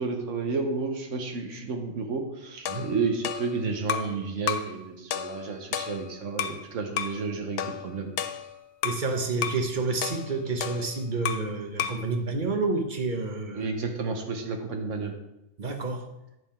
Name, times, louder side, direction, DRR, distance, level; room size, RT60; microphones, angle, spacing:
voice 1, 0.0-8.1 13.5-15.1, right 4 dB, 75° right, 4 dB, 1.3 m, -31 dB
sound 1, 2.6-4.2 4.5-4.8 5.1-6.6 7.0-7.2 7.6-9.1 9.4-9.7 10.0-11.5 11.8-12.1, left 9 dB, 65° left, 0.8 m, -32 dB
voice 2, 8.8-13.7 15.6-16.1, right 3 dB, 40° right, 4 dB, 1.0 m, -29 dB
9.4 x 5.5 x 4.3 m, 0.91 s
omnidirectional pair, 1.3 m